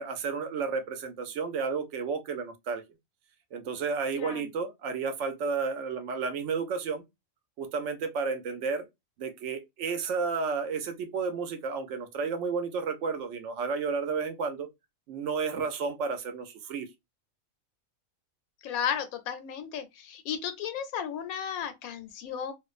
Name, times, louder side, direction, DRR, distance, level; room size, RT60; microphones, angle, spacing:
voice 1, 0.0-2.8 3.5-7.0 7.6-8.8 9.2-14.7 15.1-16.9, right 5 dB, 70° right, 0.8 m, -32 dB
voice 2, 4.2-4.5 18.6-22.5, left 8 dB, 90° left, 1.1 m, -34 dB
2.5 x 2.1 x 2.3 m
omnidirectional pair, 1.5 m